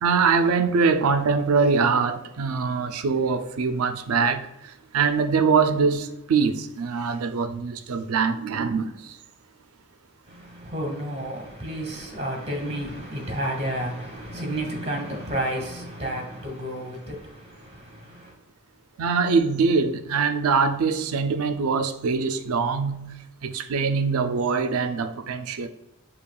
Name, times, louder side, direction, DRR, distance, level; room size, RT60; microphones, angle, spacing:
voice 1, 0.0-9.2 19.0-25.7, right 5 dB, 80° right, 0.4 m, -23 dB
voice 2, 10.3-18.3, right 1 dB, 30° right, 1.2 m, -31 dB
6.8 x 2.8 x 2.3 m
head